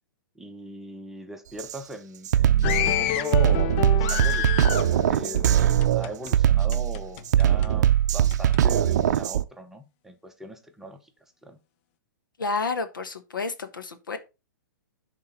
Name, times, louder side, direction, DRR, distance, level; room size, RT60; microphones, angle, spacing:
voice 1, 0.4-11.0 11.4-11.6, equal, 5° right, 0.8 m, -39 dB
Drum kit, 1.6-1.8 2.3-9.4, right 11 dB, 55° right, 0.5 m, -21 dB
sound 1, 2.6-6.3 6.7-7.7 8.3-8.6, left 12 dB, 40° left, 0.5 m, -29 dB
voice 2, 12.4-14.2, left 4 dB, 75° left, 1.2 m, -30 dB
10.5 x 3.7 x 4.0 m
hypercardioid pair, 120°, 11 cm